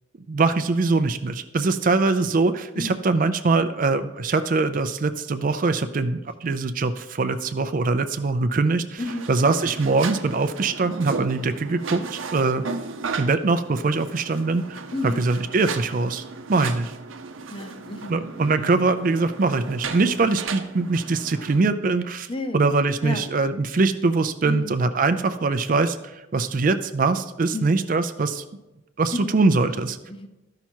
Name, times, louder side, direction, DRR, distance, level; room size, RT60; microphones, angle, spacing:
voice 1, 0.3-9.0 9.3-12.6 13.2-16.2 16.5-16.9 18.1-22.3 22.5-26.0 26.3-28.4 29.0-30.0, right 3 dB, 45° right, 11 dB, 0.4 m, -22 dB
voice 2, 9.0-9.3 14.9-15.3 17.5-18.6 22.3-22.6 23.0-23.3 24.4-24.8 27.5-27.8 29.1-30.3, left 2 dB, 25° left, 8 dB, 0.6 m, -33 dB
sound 1, 9.0-21.6, right 4 dB, 90° right, 0.7 m, -35 dB
12.5 x 5.8 x 4.4 m, 1.0 s
head